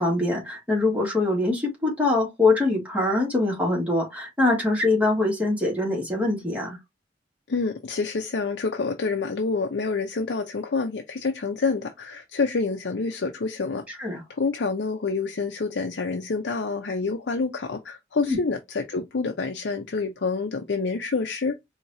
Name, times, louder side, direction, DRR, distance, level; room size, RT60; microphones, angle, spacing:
voice 1, 0.0-6.8 13.9-14.2 18.2-18.4, left 2 dB, 10° right, 1.9 m, -23 dB
voice 2, 7.5-21.5, left 4 dB, 75° left, 0.6 m, -27 dB
4.5 x 2.8 x 2.7 m
head